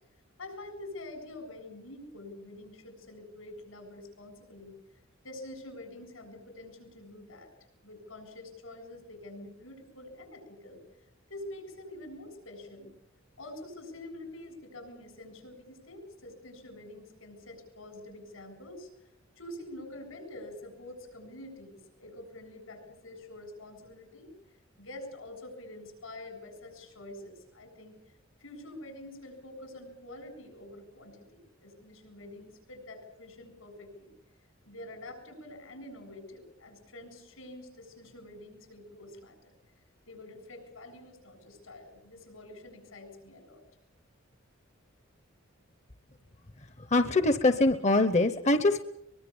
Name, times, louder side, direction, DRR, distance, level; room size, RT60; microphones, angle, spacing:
voice 1, 0.4-4.8 5.2-7.5 7.8-10.8 11.3-12.9 13.4-19.1 19.4-24.3 24.8-28.0 28.4-34.1 34.7-39.5 40.1-43.6, left 1 dB, 85° left, 7 dB, 7.7 m, -46 dB
voice 2, 46.9-48.8, left 2 dB, 35° left, 11 dB, 0.9 m, -23 dB
23.0 x 22.5 x 7.1 m, 0.77 s
head